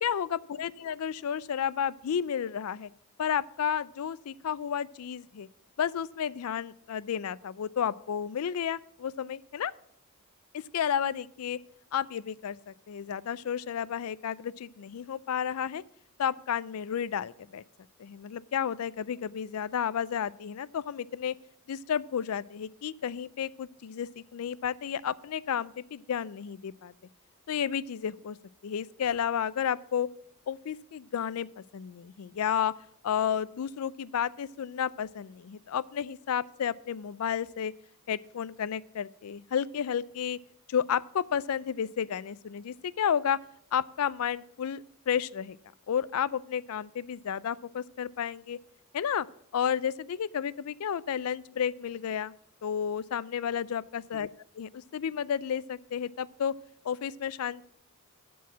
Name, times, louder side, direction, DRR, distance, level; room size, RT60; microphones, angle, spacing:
voice 1, 0.0-2.9 3.2-5.5 5.8-9.7 10.5-11.6 11.9-15.8 16.2-17.6 18.0-21.3 21.7-26.9 27.5-28.4 28.6-30.1 30.5-32.7 33.0-37.7 38.1-40.4 40.7-43.4 43.7-45.6 45.9-48.6 48.9-49.3 49.5-52.3 52.6-54.3 54.6-56.5 56.8-57.6, left 8 dB, 75° left, 19 dB, 0.4 m, -32 dB
11.5 x 4.7 x 8.2 m, 0.69 s
head